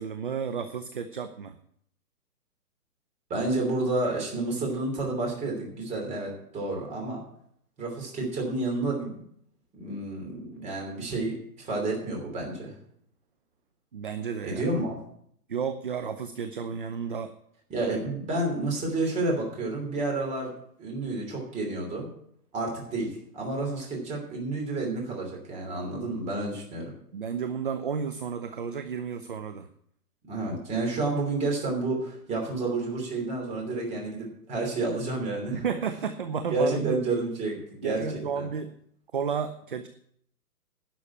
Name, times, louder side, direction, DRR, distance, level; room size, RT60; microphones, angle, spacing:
voice 1, 0.0-1.6 13.9-14.7 15.5-17.3 27.1-29.7 35.5-37.0 37.8-38.7 39.1-39.9, right 6 dB, 35° right, 9 dB, 0.4 m, -32 dB
voice 2, 3.3-7.2 7.8-9.2 9.7-12.8 14.4-15.0 17.7-20.5 20.8-22.1 22.5-26.9 30.3-35.6 36.5-38.0 38.3-38.5, right 2 dB, 15° right, 0 dB, 2.9 m, -30 dB
11.5 x 6.1 x 8.5 m, 0.69 s
hypercardioid pair, 155°, 47 cm